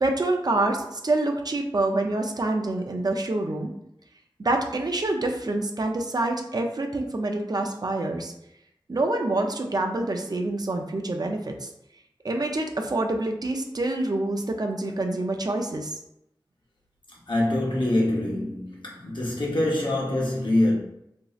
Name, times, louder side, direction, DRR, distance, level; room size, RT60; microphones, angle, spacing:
voice 1, 0.0-3.7 4.4-8.3 8.9-11.7 12.2-15.9, right 2 dB, 50° right, 0.4 m, -26 dB
voice 2, 17.3-20.7, left 1 dB, 70° left, 0.8 m, -24 dB
3.0 x 2.6 x 2.3 m
wide cardioid pair, 40°, 8 cm